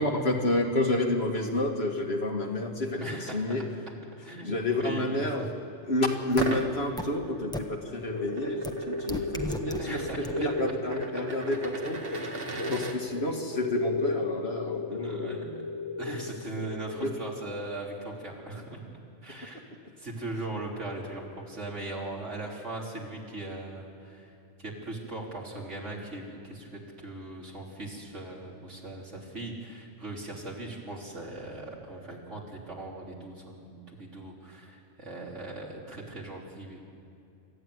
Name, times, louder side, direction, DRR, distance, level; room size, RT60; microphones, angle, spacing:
voice 1, 0.0-3.6 4.4-5.4 5.9-10.0 10.4-12.3 12.7-15.7 16.1-16.2 17.0-17.1, left 2 dB, 60° left, 1 dB, 2.3 m, -29 dB
voice 2, 3.0-3.4 4.2-5.3 9.8-10.4 12.5-12.8 14.9-15.5 16.0-18.8 19.2-19.6 20.0-36.8, right 2 dB, 85° right, -2 dB, 3.9 m, -39 dB
sound 1, 6.3-13.0, right 3 dB, 50° right, 1.8 m, -39 dB
sound 2, 6.4-6.5 7.0-7.1 7.5-7.6 8.6-8.7 9.1-9.8 10.2-10.3, left 1 dB, 5° left, 1.1 m, -32 dB
sound 3, 8.1-17.9, left 3 dB, 20° left, 0.5 m, -36 dB
25.5 x 14.0 x 9.6 m, 2.6 s
omnidirectional pair, 1.2 m